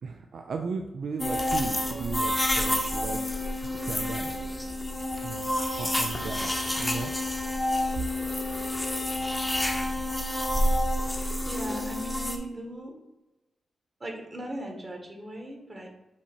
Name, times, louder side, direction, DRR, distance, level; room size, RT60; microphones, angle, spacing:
voice 1, 0.0-3.4 3.9-4.3 5.2-5.5 5.8-6.5 6.8-7.1, right 5 dB, 70° right, 4 dB, 0.4 m, -36 dB
sound 1, 1.2-12.4, left 1 dB, 10° left, 0.8 m, -29 dB
voice 2, 11.4-12.9 14.0-15.9, right 1 dB, 30° right, 2 dB, 1.3 m, -38 dB
7.2 x 2.9 x 4.4 m, 1.0 s
cardioid pair, 90°, 0 cm